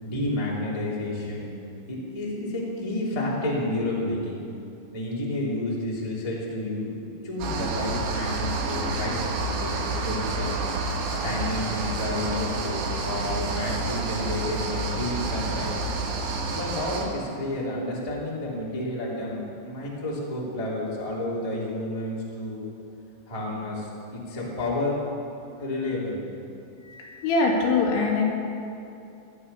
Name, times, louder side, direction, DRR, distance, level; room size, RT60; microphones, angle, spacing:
voice 1, 0.0-1.6 1.9-4.4 4.9-10.6 11.2-15.8 16.5-22.6 23.3-25.0 25.6-26.2, left 1 dB, 10° left, -6 dB, 2.1 m, -30 dB
sound 1, 7.4-17.1, right 3 dB, 80° right, 4.1 m, -29 dB
voice 2, 26.8-28.2, left 3 dB, 75° left, -2 dB, 4.4 m, -23 dB
18.0 x 12.0 x 5.6 m, 2.7 s
omnidirectional pair, 5.5 m